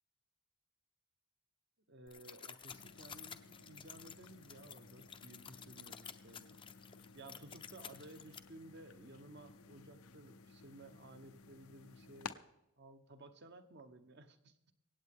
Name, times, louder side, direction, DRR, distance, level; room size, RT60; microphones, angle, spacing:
voice 1, 1.9-6.7 7.1-12.4 12.8-14.6, right 2 dB, 50° right, 9 dB, 1.0 m, -56 dB
sound 1, 2.1-8.4, left 7 dB, 25° left, 0.6 m, -52 dB
sound 2, 2.7-12.3, left 5 dB, 85° left, 0.8 m, -56 dB
25.0 x 8.6 x 3.6 m, 0.86 s
head